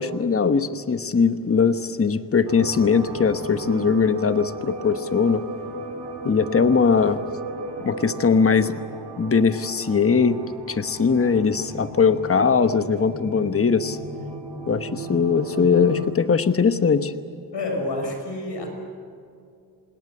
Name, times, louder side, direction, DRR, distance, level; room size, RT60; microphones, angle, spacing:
voice 1, 0.0-5.4 6.2-7.2 7.8-8.8 9.2-10.4 10.7-14.0 14.7-17.1, left 5 dB, 35° left, 10 dB, 1.1 m, -20 dB
sound 1, 2.5-16.1, right 3 dB, 70° right, 2.9 m, -36 dB
voice 2, 17.5-18.7, left 2 dB, 85° left, 4 dB, 5.4 m, -28 dB
27.0 x 20.0 x 7.9 m, 2.4 s
wide cardioid pair, 100°, 41 cm